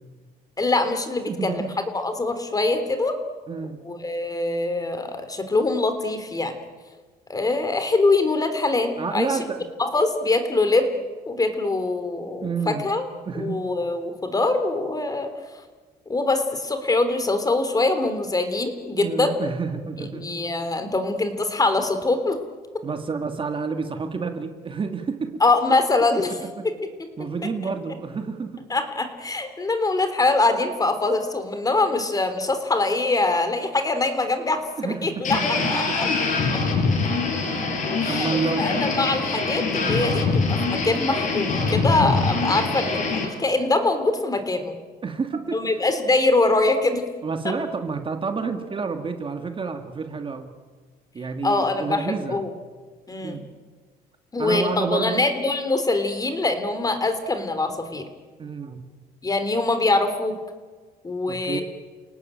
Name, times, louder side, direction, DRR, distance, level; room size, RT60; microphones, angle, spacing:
voice 1, 0.6-1.6 1.9-3.2 3.8-6.5 7.3-9.4 9.8-10.9 11.2-13.1 13.3-15.3 16.1-19.4 20.0-22.4 25.4-26.3 26.6-26.7 28.7-35.4 35.7-36.1 36.5-36.6 38.0-44.8 45.5-47.0 47.4-47.5 51.4-52.5 53.1-53.4 54.3-58.0 59.2-60.3 61.0-61.6, left 2 dB, 20° left, 8 dB, 3.3 m, -23 dB
voice 2, 1.3-1.7 3.5-3.8 9.0-9.7 12.4-12.8 13.3-13.7 19.0-20.4 22.8-25.4 26.1-26.7 27.2-28.7 34.8-36.1 38.1-38.8 39.8-40.1 42.3-42.8 45.0-45.6 47.2-50.5 51.1-52.5 53.2-53.5 54.4-55.3 58.4-58.9 61.3-61.6, right 5 dB, 30° right, 6 dB, 2.0 m, -29 dB
sound 1, 35.2-43.3, left 4 dB, 50° left, 6.6 m, -24 dB
29.5 x 18.0 x 9.0 m, 1.4 s
cardioid pair, 110°, 17 cm